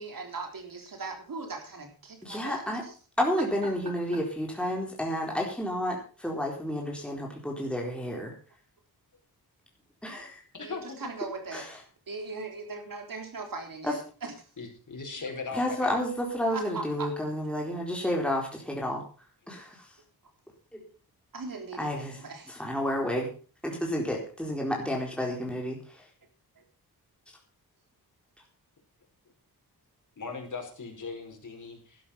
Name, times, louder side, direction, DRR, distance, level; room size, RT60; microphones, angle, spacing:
voice 1, 0.0-2.9 3.4-3.5 3.9-4.0 10.6-11.7 12.1-14.5 16.5-17.1 21.3-22.6 26.6-26.7, right 3 dB, 60° right, 5 dB, 3.7 m, -39 dB
voice 2, 2.2-2.8 3.2-8.3 10.0-10.4 11.5-11.7 13.8-13.9 15.5-19.0 19.5-19.9 20.7-20.8 21.8-22.2 22.5-23.3 23.6-26.1, equal, 5° left, -1 dB, 4.1 m, -30 dB
voice 3, 10.5-11.0 14.6-15.9 30.2-31.7, left 4 dB, 50° left, 3 dB, 5.0 m, -38 dB
12.5 x 11.5 x 5.7 m, 0.38 s
wide cardioid pair, 100°, 38 cm